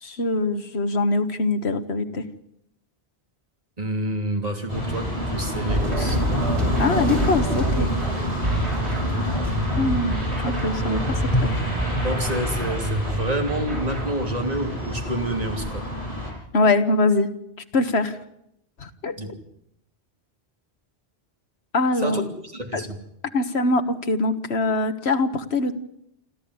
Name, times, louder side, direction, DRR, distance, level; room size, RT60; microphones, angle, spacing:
voice 1, 0.0-2.2 6.0-6.1 6.8-7.9 9.8-11.5 16.5-17.3 17.7-18.2 18.8-19.2 21.7-22.2 22.7-22.8 23.3-25.8, left 2 dB, 80° left, 9 dB, 1.7 m, -23 dB
voice 2, 3.8-6.2 8.7-8.9 10.3-10.4 12.0-15.9 19.2-19.4 21.9-23.0, right 1 dB, 40° right, 4 dB, 3.0 m, -29 dB
sound 1, 4.7-16.3, equal, 35° left, 7.1 m, -27 dB
sound 2, 5.7-14.2, right 1 dB, 90° right, 6.2 m, -28 dB
28.0 x 13.0 x 9.6 m, 0.80 s
omnidirectional pair, 1.1 m